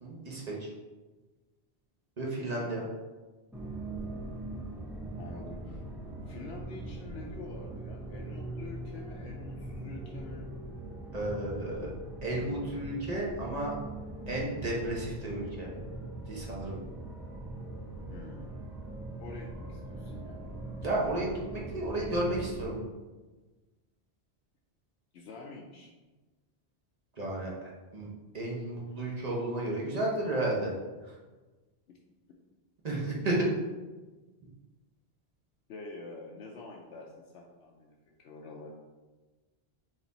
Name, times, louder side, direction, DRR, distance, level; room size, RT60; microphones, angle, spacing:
voice 1, 0.0-0.7 2.2-2.9 11.1-11.9 12.2-13.7 14.3-15.7 16.3-16.8 20.8-22.8 27.2-27.5 27.9-28.1 28.3-30.7 32.8-33.5, right 1 dB, 40° right, -4 dB, 0.9 m, -32 dB
voice 2, 2.5-2.9 5.2-5.8 6.3-10.5 12.3-13.0 18.1-18.6 19.2-20.5 25.1-25.9 35.7-38.7, left 3 dB, 80° left, -1 dB, 0.8 m, -47 dB
sound 1, 3.5-22.7, right 2 dB, 5° right, 0.3 m, -41 dB
4.2 x 2.5 x 3.9 m, 1.2 s
omnidirectional pair, 1.1 m